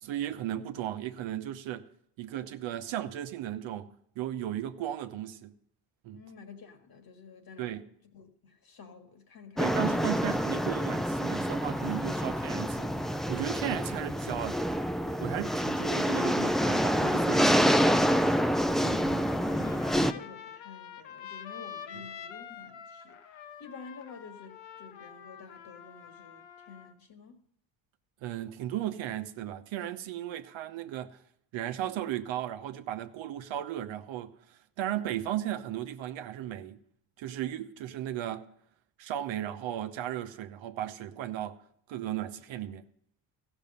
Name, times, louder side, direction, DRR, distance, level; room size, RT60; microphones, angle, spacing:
voice 1, 0.0-1.8 2.2-5.5 6.0-6.2 7.6-7.8 9.6-14.6 15.2-17.5 28.2-31.2 31.5-34.4 34.8-36.8 37.2-38.5 39.0-41.6 41.9-42.8, right 12 dB, 70° right, 0.9 m, -35 dB
voice 2, 6.1-7.8 8.1-10.1 18.4-23.2 23.6-27.4, left 4 dB, 50° left, 1.8 m, -49 dB
sound 1, 9.6-20.1, equal, ahead, 0.4 m, -27 dB
Trumpet, 19.3-26.9, left 8 dB, 75° left, 1.0 m, -46 dB
15.0 x 6.3 x 5.4 m
supercardioid pair, 70°, 46 cm